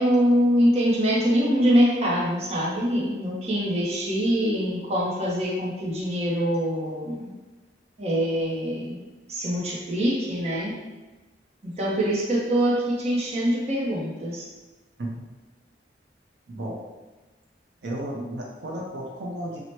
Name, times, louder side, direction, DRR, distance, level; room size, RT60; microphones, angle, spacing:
voice 1, 0.0-7.3 8.0-9.0 9.3-10.7 11.6-14.5, equal, 35° right, -4 dB, 0.6 m, -24 dB
voice 2, 16.5-16.8 17.8-19.6, right 1 dB, 75° right, -2 dB, 0.5 m, -33 dB
4.3 x 2.0 x 3.0 m, 1.2 s
head